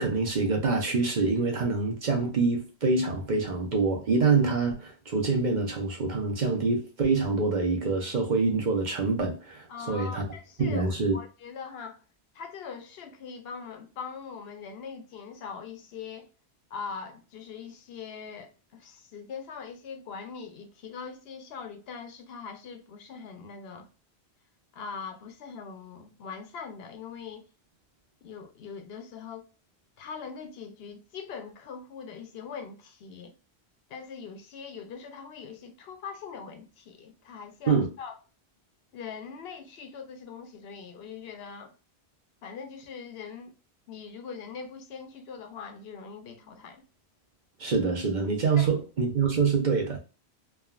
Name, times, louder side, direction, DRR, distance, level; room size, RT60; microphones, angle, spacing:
voice 1, 0.0-10.2 10.6-11.1 37.7-37.9 47.6-50.0, right 4 dB, 50° right, 0.8 m, -26 dB
voice 2, 9.7-12.0 12.3-16.3 16.7-23.9 24.7-27.5 28.2-29.4 30.0-33.3 33.9-38.2 38.9-41.7 42.4-43.5 43.9-46.8 48.5-48.7, left 6 dB, 70° left, 0.8 m, -42 dB
3.4 x 2.3 x 2.3 m
omnidirectional pair, 1.1 m